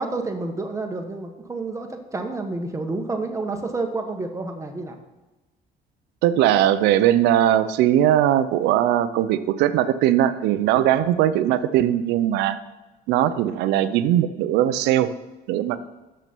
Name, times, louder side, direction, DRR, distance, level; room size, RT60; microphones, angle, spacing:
voice 1, 0.0-5.0, right 3 dB, 20° right, 4 dB, 1.2 m, -29 dB
voice 2, 6.2-12.6 13.1-15.1 15.5-15.8, right 11 dB, 90° right, 13 dB, 0.5 m, -20 dB
6.8 x 6.0 x 5.9 m, 1.1 s
cardioid pair, 110°, 17 cm